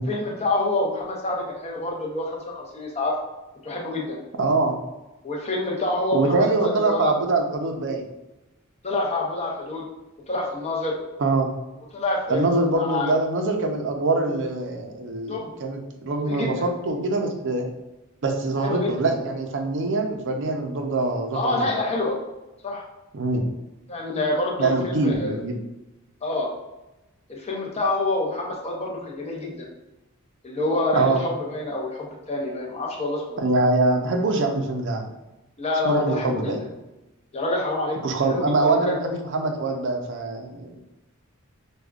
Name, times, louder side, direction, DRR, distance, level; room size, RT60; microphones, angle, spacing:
voice 1, 0.1-3.2 3.6-4.2 5.2-7.1 8.8-9.8 10.3-11.0 11.9-12.4 12.7-13.2 15.3-15.5 16.1-16.7 18.6-18.9 21.3-22.1 22.6-22.8 23.9-25.4 26.2-26.5 27.3-29.7 30.4-33.4 35.6-36.5 37.3-38.0 38.3-39.0, left 2 dB, 30° left, -1 dB, 0.7 m, -27 dB
voice 2, 4.4-4.8 6.1-8.0 11.2-11.5 12.3-17.7 18.2-21.7 23.1-23.5 24.6-25.6 30.9-31.2 33.4-35.1 35.8-36.6 38.0-40.8, right 2 dB, 60° right, 3 dB, 0.5 m, -24 dB
5.0 x 2.3 x 2.3 m, 1.0 s
head